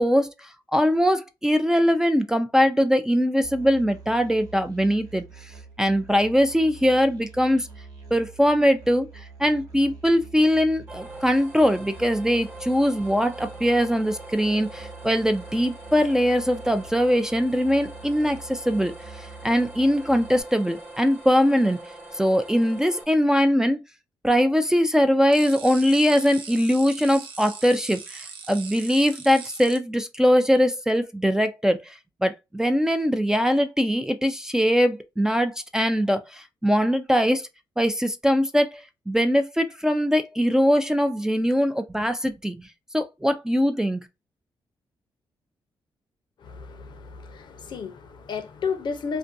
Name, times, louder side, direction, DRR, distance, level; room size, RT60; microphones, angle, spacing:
voice 1, 0.0-5.2 5.8-7.7 8.1-9.1 9.4-21.8 22.2-23.8 24.2-31.9 32.2-37.5 37.8-42.6 42.9-44.1, equal, 5° right, 0.4 m, -22 dB
Musical instrument, 3.4-20.4, right 4 dB, 45° right, 1.0 m, -45 dB
sound 1, 10.9-23.0, right 2 dB, 25° right, 1.1 m, -43 dB
sound 2, 25.3-29.8, right 5 dB, 80° right, 0.6 m, -40 dB
voice 2, 46.4-49.2, left 5 dB, 60° left, 0.6 m, -32 dB
2.5 x 2.2 x 2.5 m
cardioid pair, 75°, 9 cm